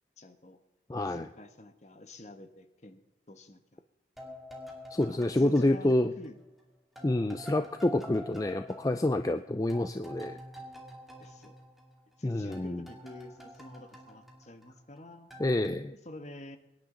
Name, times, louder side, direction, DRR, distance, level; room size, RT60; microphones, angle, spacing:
voice 1, 0.2-0.6 1.0-3.0 3.3-3.8 5.1-6.4 11.2-11.5 12.2-15.3 15.9-16.6, left 1 dB, 40° left, 8 dB, 1.2 m, -49 dB
voice 2, 0.9-1.3 4.9-6.1 7.0-10.4 12.2-12.8 15.4-15.9, left 1 dB, 20° left, 9 dB, 0.4 m, -28 dB
sound 1, 4.2-6.6 7.0-12.2 12.5-15.0 15.3-15.7, equal, ahead, 2.2 m, -48 dB
23.5 x 10.5 x 3.9 m, 0.98 s
head